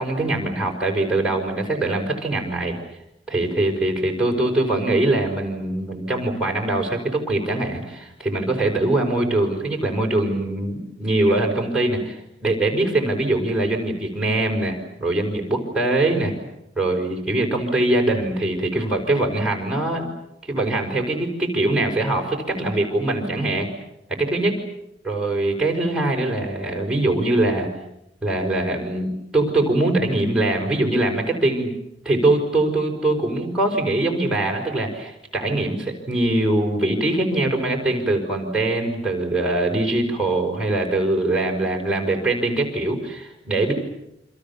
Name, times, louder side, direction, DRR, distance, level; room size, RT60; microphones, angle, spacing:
voice 1, 0.0-2.8 3.3-16.3 16.8-20.1 20.5-23.7 24.2-24.6 25.0-27.7 28.2-31.7 32.1-43.7, right 2 dB, 5° right, 1 dB, 5.2 m, -22 dB
28.0 x 26.5 x 7.2 m, 0.83 s
head